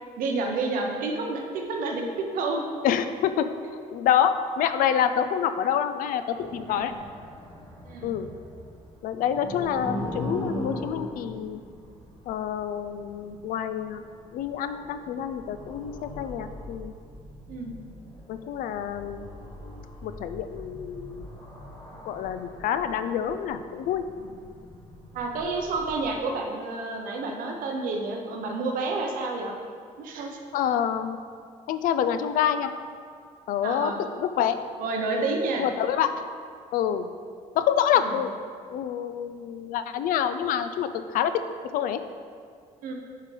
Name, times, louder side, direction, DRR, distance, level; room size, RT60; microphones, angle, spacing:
voice 1, 0.2-2.7 6.7-6.9 7.8-8.2 17.5-17.7 24.2-24.4 25.1-29.5 30.0-30.4 33.6-34.0 34.8-35.7 38.0-38.1 42.8-42.9, right 3 dB, 85° right, 2 dB, 0.8 m, -30 dB
voice 2, 2.8-6.9 8.0-8.3 9.0-11.6 12.3-14.0 14.3-16.9 18.3-19.3 20.0-21.3 22.1-24.1 30.5-31.2 31.7-32.7 33.5-34.6 35.6-36.2 36.7-37.1 37.5-38.3 38.7-41.4 41.7-42.0, left 9 dB, 80° left, 10 dB, 0.4 m, -27 dB
sound 1, 6.3-26.2, left 1 dB, 25° left, 1.2 m, -41 dB
9.9 x 3.7 x 3.3 m, 2.2 s
cardioid pair, 170°, 14 cm